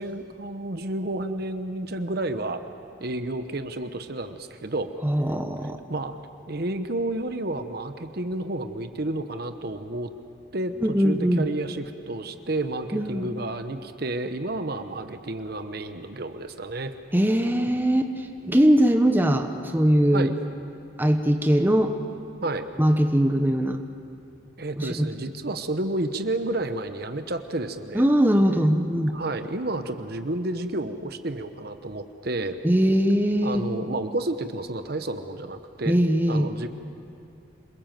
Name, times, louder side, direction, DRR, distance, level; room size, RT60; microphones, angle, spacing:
voice 1, 0.0-2.6 3.0-4.9 5.9-6.2 6.5-10.1 10.5-16.9 20.1-20.3 22.4-22.7 24.6-28.1 29.1-32.6 33.4-36.0 36.3-36.7, right 2 dB, 55° right, 8 dB, 1.0 m, -31 dB
voice 2, 5.0-5.8 10.8-11.5 12.9-13.3 17.1-18.1 18.4-20.3 21.0-21.9 22.8-23.8 24.8-25.1 27.9-29.1 32.6-33.6 35.9-36.5, equal, 10° right, 5 dB, 1.0 m, -21 dB
27.5 x 21.5 x 7.6 m, 2.6 s
head